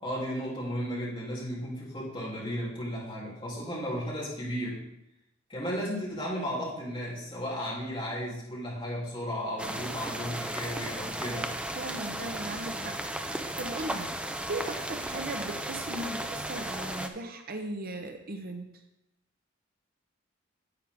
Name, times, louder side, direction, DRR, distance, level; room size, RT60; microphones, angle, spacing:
voice 1, 0.0-4.8 5.5-11.5, equal, 25° left, -5 dB, 3.0 m, -34 dB
sound 1, 9.6-17.1, right 1 dB, 5° right, 0.5 m, -35 dB
voice 2, 11.8-13.0 13.3-18.7, right 2 dB, 50° right, 5 dB, 0.8 m, -38 dB
9.7 x 8.3 x 3.6 m, 0.83 s
head